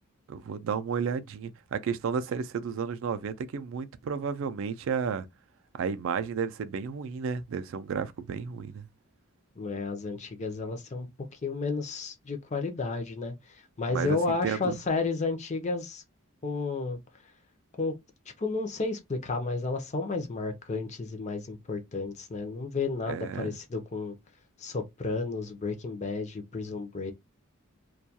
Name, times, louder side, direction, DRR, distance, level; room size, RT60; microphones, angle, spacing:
voice 1, 0.3-5.3 5.7-8.9 13.9-14.8 23.1-23.6, right 6 dB, 60° right, 0.3 m, -32 dB
voice 2, 9.6-11.1 11.4-16.0 16.4-17.0 17.8-18.0 18.4-24.1 24.6-27.1, left 3 dB, 30° left, 0.5 m, -32 dB
2.3 x 2.2 x 2.7 m
head